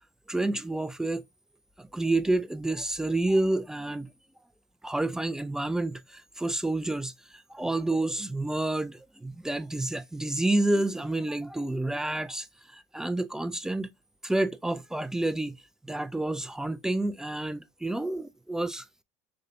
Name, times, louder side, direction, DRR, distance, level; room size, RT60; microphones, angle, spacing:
voice 1, 0.3-1.2 1.8-4.1 4.8-12.5 12.7-13.9 14.2-15.6 15.9-18.8, right 2 dB, 5° right, 0.3 m, -29 dB
4.0 x 3.1 x 2.5 m
supercardioid pair, 105°, 9 cm